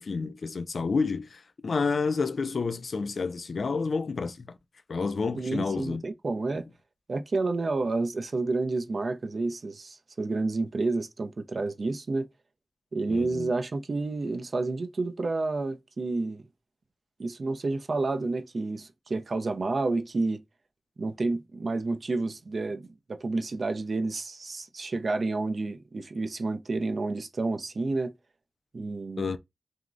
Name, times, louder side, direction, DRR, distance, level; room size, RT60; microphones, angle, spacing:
voice 1, 0.0-4.6 4.9-6.0 13.1-13.5 29.2-29.4, left 4 dB, 80° left, 0.3 m, -29 dB
voice 2, 5.3-6.6 7.1-12.3 12.9-16.4 17.2-20.4 21.0-28.1 28.7-29.3, right 3 dB, 65° right, 0.4 m, -30 dB
3.4 x 2.0 x 2.4 m
wide cardioid pair, 70°, 0 cm